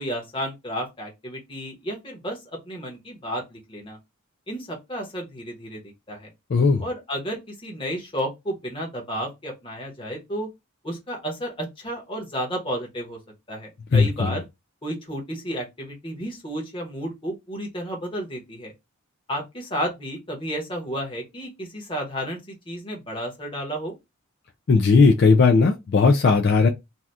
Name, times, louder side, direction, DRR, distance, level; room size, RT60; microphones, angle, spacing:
voice 1, 0.0-2.4 2.6-4.0 4.5-5.8 6.1-6.3 6.8-10.5 10.8-13.2 13.5-14.4 14.8-18.7 19.3-23.9, equal, 25° left, 1.1 m, -32 dB
voice 2, 6.5-6.8 13.9-14.3 24.7-26.7, left 4 dB, 50° left, 0.4 m, -17 dB
2.8 x 2.3 x 3.3 m
head